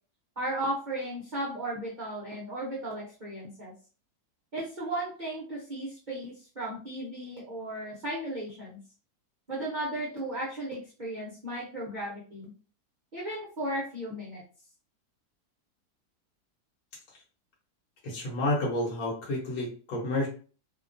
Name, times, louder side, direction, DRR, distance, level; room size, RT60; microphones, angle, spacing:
voice 1, 0.4-3.7 4.5-8.8 9.5-12.5 13.1-14.4, right 1 dB, 45° right, -6 dB, 0.6 m, -35 dB
voice 2, 18.0-20.3, left 1 dB, 70° left, -3 dB, 1.3 m, -30 dB
2.8 x 2.2 x 2.5 m, 0.38 s
omnidirectional pair, 1.7 m